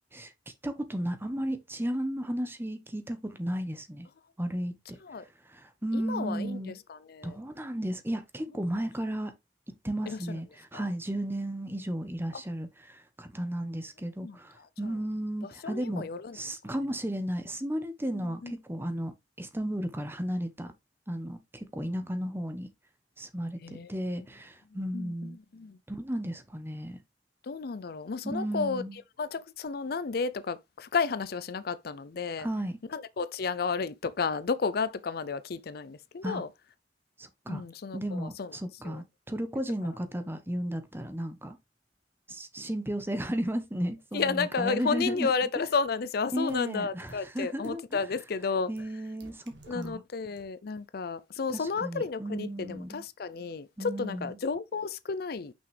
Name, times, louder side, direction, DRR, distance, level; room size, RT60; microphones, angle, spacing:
voice 1, 0.6-4.1 4.4-5.0 5.5-6.8 7.2-9.3 9.8-16.1 16.3-20.7 21.1-22.7 23.2-25.4 25.9-27.0 28.2-29.0 32.4-32.8 36.2-36.4 37.2-37.6 37.9-41.6 42.3-45.3 46.3-47.8 48.7-50.0 51.5-53.0 53.8-54.4, right 1 dB, 15° right, 1.0 m, -34 dB
voice 2, 5.9-7.4 10.1-10.4 10.7-10.9 12.3-12.4 14.2-14.4 14.8-14.9 15.4-16.4 18.1-18.5 23.6-23.9 24.7-25.8 27.4-28.8 29.2-32.5 32.9-36.5 37.5-38.5 38.8-39.0 44.1-48.7 49.7-55.5, left 5 dB, 60° left, 0.5 m, -32 dB
sound 1, 46.5-46.6 47.1-47.2 47.6-47.7 48.8-48.9 49.2-49.9 50.4-50.5, right 1 dB, 75° right, 1.8 m, -51 dB
6.0 x 5.9 x 3.3 m
head